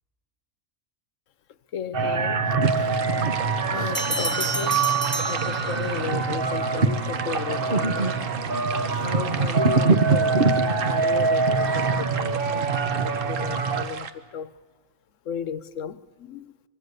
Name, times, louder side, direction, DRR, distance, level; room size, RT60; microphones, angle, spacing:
voice 1, 1.7-3.3 3.6-5.0 5.3-14.5 15.2-16.5, left 8 dB, 75° left, 1.2 m, -35 dB
sound 1, 1.9-13.8, right 4 dB, 45° right, 1.2 m, -24 dB
sound 2, 2.6-14.1, right 6 dB, 75° right, 1.5 m, -36 dB
sound 3, 3.9-6.2, right 1 dB, 15° right, 1.0 m, -30 dB
25.0 x 23.0 x 6.7 m
omnidirectional pair, 1.3 m